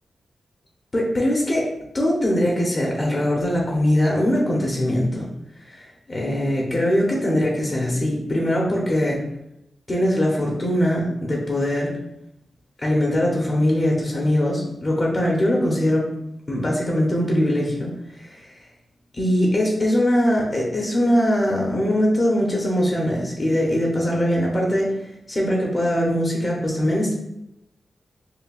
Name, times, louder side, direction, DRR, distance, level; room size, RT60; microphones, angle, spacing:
voice 1, 0.9-1.7 1.9-5.3 5.6-9.2 9.9-11.9 12.8-16.1 16.5-18.6 19.2-25.0 25.3-27.1, equal, 30° left, -2 dB, 0.7 m, -21 dB
5.6 x 2.2 x 2.3 m, 0.80 s
wide cardioid pair, 145°, 0 cm